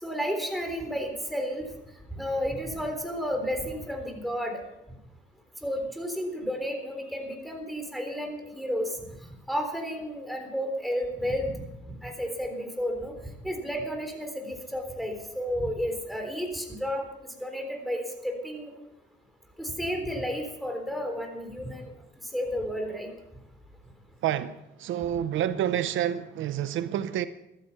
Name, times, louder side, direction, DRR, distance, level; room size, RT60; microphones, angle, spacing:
voice 1, 0.0-1.6 2.1-4.6 5.6-8.9 9.5-11.6 12.0-13.1 13.4-17.0 17.4-18.7 19.6-21.9 22.3-23.1, equal, ahead, 3.8 m, -32 dB
voice 2, 24.2-27.3, right 10 dB, 75° right, 0.7 m, -28 dB
14.5 x 12.5 x 5.9 m
cardioid pair, 90°, 20 cm